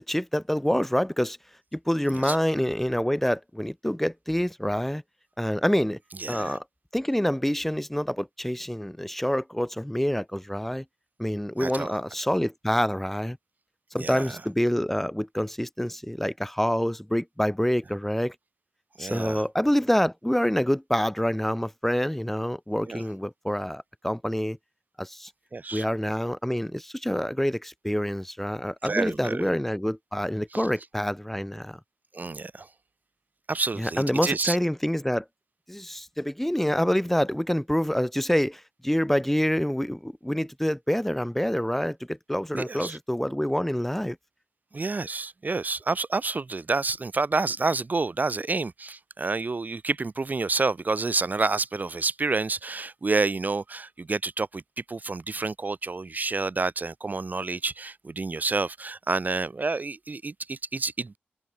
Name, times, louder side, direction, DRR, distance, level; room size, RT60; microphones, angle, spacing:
voice 1, 0.0-1.4 1.7-5.0 5.4-6.0 6.3-6.6 6.9-10.8 11.2-13.4 13.9-18.3 19.0-24.6 25.0-25.3 25.7-31.8 33.8-35.2 35.7-44.2, equal, 5° left, 1.1 m, -27 dB
voice 2, 6.2-6.5 11.6-11.9 14.0-14.3 19.0-19.4 22.9-23.0 25.5-25.8 28.8-29.5 32.1-32.7 33.5-34.6 42.5-43.0 44.7-54.6 54.9-61.2, right 3 dB, 45° right, 3.4 m, -29 dB
open air
cardioid pair, 65°, 4 cm